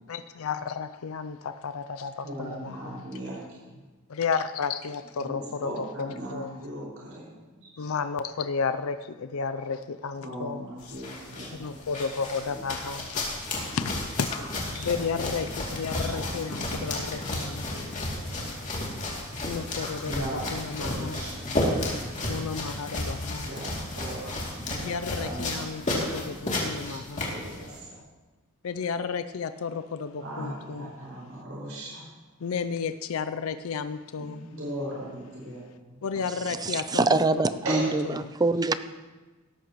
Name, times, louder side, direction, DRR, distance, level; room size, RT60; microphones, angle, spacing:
voice 1, 0.1-3.0 4.1-6.6 7.8-11.0 11.6-14.3 14.7-18.0 19.4-21.2 22.3-23.5 24.7-27.3 28.6-30.9 32.4-34.4 36.0-37.2 38.2-38.3, left 5 dB, 70° left, 11 dB, 0.5 m, -33 dB
voice 2, 2.2-3.6 5.2-7.3 7.8-7.9 10.2-11.9 12.5-12.6 14.7-15.3 15.7-17.4 17.7-18.5 20.0-21.9 22.2-22.3 23.3-24.9 25.2-28.0 30.2-32.0 34.2-35.6 37.6-37.9, right 1 dB, 65° right, -6 dB, 5.5 m, -39 dB
sound 1, 10.8-27.8, left 1 dB, 35° left, 2.7 m, -33 dB
voice 3, 36.5-38.7, right 3 dB, 20° right, 12 dB, 0.4 m, -25 dB
18.0 x 13.5 x 3.1 m, 1.2 s
head